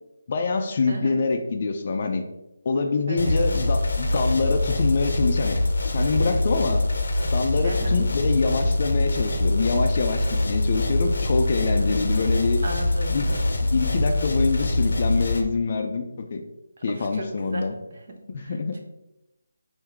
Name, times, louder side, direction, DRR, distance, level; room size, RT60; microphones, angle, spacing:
voice 1, 0.3-2.2 2.6-5.6 5.9-6.8 7.3-12.6 13.1-13.3 13.6-16.4 16.8-17.8 18.3-18.8, left 4 dB, 40° left, 6 dB, 0.4 m, -25 dB
voice 2, 0.9-1.2 3.1-3.5 7.6-8.0 11.7-12.2 12.6-13.3 17.0-17.7 18.4-18.8, right 2 dB, 50° right, 2 dB, 0.8 m, -35 dB
sound 1, 3.2-15.4, left 2 dB, 65° left, 0.7 m, -24 dB
3.7 x 2.6 x 4.4 m, 0.91 s
figure-of-eight pair, 170°, 0 cm